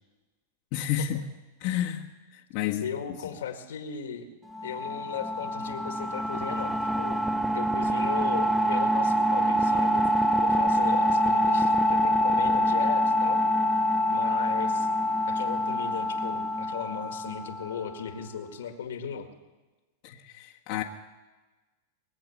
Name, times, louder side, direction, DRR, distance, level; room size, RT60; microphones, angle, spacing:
voice 1, 0.7-1.2 1.6-2.9 20.0-20.8, left 10 dB, 50° left, -1 dB, 1.3 m, -31 dB
voice 2, 2.8-4.3 4.6-7.2 7.5-10.1 10.4-13.4 14.1-14.9 15.3-19.3, left 7 dB, 85° left, 6 dB, 2.0 m, -37 dB
sound 1, 4.5-18.0, equal, 5° right, 0.5 m, -25 dB
22.5 x 7.8 x 7.3 m, 1.2 s
hypercardioid pair, 130°, 0 cm